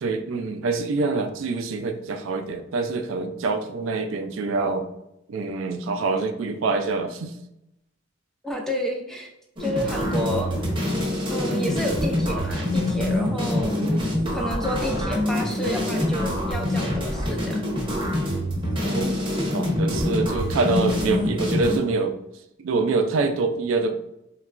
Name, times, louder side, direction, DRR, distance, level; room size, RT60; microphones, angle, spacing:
voice 1, 0.0-4.9 5.3-7.3 13.8-14.3 18.8-19.2 19.5-22.2 22.6-23.9, right 3 dB, 80° right, 6 dB, 0.4 m, -25 dB
voice 2, 8.4-9.3 9.6-10.5 11.3-13.8 14.3-17.6 20.0-20.4, equal, 5° left, 1 dB, 0.4 m, -30 dB
sound 1, 9.6-21.8, left 1 dB, 25° right, 0.7 m, -25 dB
3.8 x 2.2 x 2.3 m, 0.83 s
head